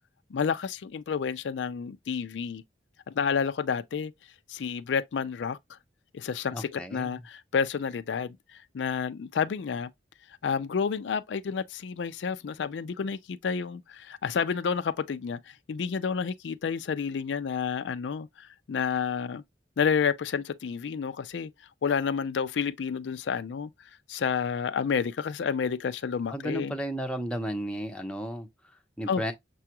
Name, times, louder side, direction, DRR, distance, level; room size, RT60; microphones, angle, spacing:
voice 1, 0.3-2.6 3.1-4.1 4.5-5.6 6.1-8.4 8.7-9.9 10.4-19.4 19.8-21.5 21.8-23.7 24.1-26.7 29.1-29.2, left 6 dB, 80° left, 0.4 m, -30 dB
voice 2, 6.5-7.2 26.3-29.3, equal, 5° left, 0.6 m, -34 dB
6.7 x 2.3 x 2.8 m
head